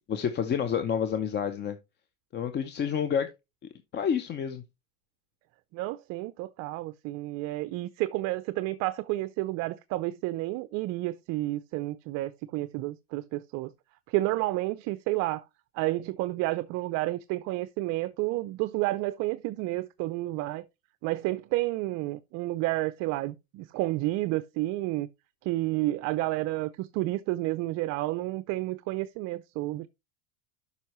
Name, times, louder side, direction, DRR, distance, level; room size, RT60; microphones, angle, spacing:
voice 1, 0.1-1.8 2.3-3.3 3.9-4.6, left 8 dB, 25° left, 0.7 m, -29 dB
voice 2, 5.7-13.7 14.1-15.4 15.7-20.7 21.0-25.1 25.4-29.9, right 18 dB, 45° right, 0.5 m, -30 dB
12.0 x 5.4 x 3.0 m
supercardioid pair, 130°, 38 cm